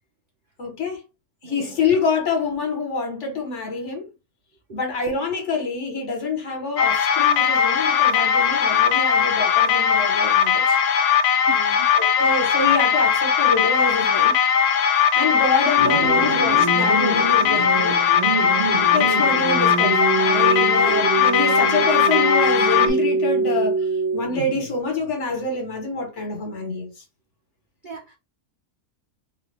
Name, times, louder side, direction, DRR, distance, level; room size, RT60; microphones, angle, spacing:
voice 1, 0.6-1.0 1.4-4.1 4.7-10.8 11.9-14.4 15.1-18.0 18.9-26.9, left 3 dB, 55° left, 1.2 m, -26 dB
voice 2, 1.4-1.9 4.7-4.8 11.5-11.9 27.8-28.2, right 5 dB, 55° right, 0.5 m, -39 dB
sound 1, 6.8-22.9, left 7 dB, 70° left, 0.6 m, -19 dB
sound 2, 15.8-24.7, right 3 dB, 75° right, 1.5 m, -25 dB
3.3 x 2.2 x 3.2 m
omnidirectional pair, 1.6 m